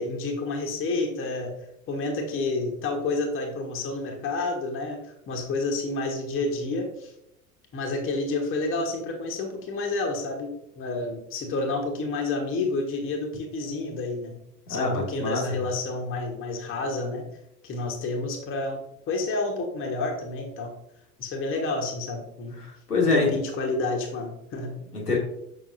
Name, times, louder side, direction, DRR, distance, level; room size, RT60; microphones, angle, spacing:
voice 1, 0.0-1.5 1.9-5.0 5.3-7.1 7.7-14.4 14.7-17.2 17.6-18.8 19.1-20.7 21.2-22.6 23.1-24.8, left 3 dB, 25° left, 2 dB, 1.2 m, -29 dB
voice 2, 14.7-15.4 22.6-23.4 24.9-25.2, left 3 dB, 80° left, -2 dB, 1.7 m, -25 dB
6.8 x 5.4 x 2.6 m, 0.80 s
figure-of-eight pair, 80°, 45 cm